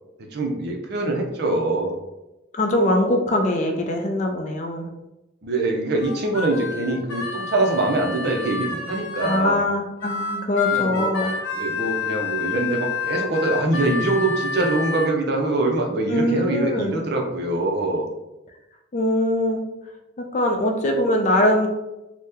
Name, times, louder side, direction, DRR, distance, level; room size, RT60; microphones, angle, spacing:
voice 1, 0.3-2.0 5.4-9.6 10.7-18.1, right 2 dB, 55° right, 2 dB, 0.5 m, -24 dB
voice 2, 2.5-4.9 9.2-11.4 16.1-16.9 18.9-19.7 20.2-21.7, left 1 dB, 35° left, 3 dB, 0.3 m, -22 dB
Harmonica, 6.0-9.5 10.0-15.1, left 5 dB, 75° left, 0.7 m, -29 dB
2.8 x 2.1 x 3.5 m, 0.96 s
head